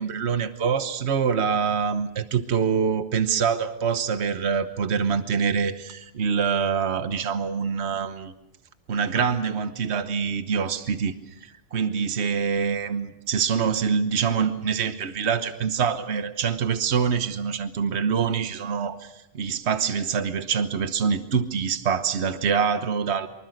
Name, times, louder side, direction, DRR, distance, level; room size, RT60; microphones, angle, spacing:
voice 1, 0.0-8.3 8.9-23.3, right 6 dB, 65° right, 9 dB, 1.4 m, -25 dB
24.5 x 24.5 x 6.4 m, 0.87 s
omnidirectional pair, 1.2 m